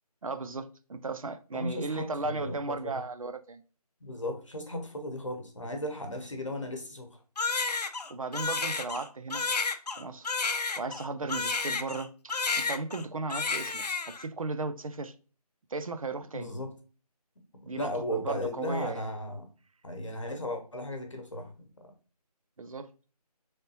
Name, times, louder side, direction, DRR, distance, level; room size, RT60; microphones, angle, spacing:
voice 1, 0.2-3.6 8.1-9.4 10.0-10.4 10.8-15.1 15.7-16.5 17.6-19.1 22.6-22.9, right 3 dB, 55° right, 0.4 m, -36 dB
voice 2, 1.5-3.0 4.0-7.2 16.3-16.7 17.7-19.5 19.8-21.5, left 1 dB, 50° left, 0.9 m, -35 dB
Crying sobbing, 7.4-12.0 12.3-13.0 13.3-14.2, left 4 dB, 75° left, 0.6 m, -31 dB
3.8 x 3.4 x 2.7 m
figure-of-eight pair, 180°, 21 cm